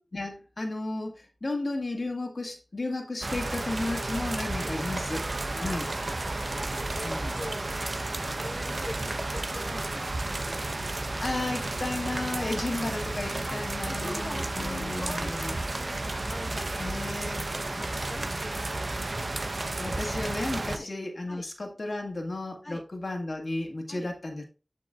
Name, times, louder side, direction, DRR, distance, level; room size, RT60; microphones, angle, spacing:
voice 1, 0.1-5.2 5.6-5.9 7.0-7.4 11.2-15.6 16.8-17.5 19.8-24.4, left 2 dB, 75° left, 3 dB, 1.9 m, -33 dB
sound 1, 3.2-20.8, right 2 dB, 70° right, 0.8 m, -32 dB
voice 2, 5.5-5.9 6.5-10.7 12.3-12.7 13.5-13.6 13.9-17.0 17.3-19.4 20.7-20.9 21.3-21.4 22.6-22.8 23.9-24.1, left 1 dB, 45° left, 3 dB, 1.0 m, -43 dB
10.0 x 5.6 x 2.4 m, 0.33 s
wide cardioid pair, 50°, 0 cm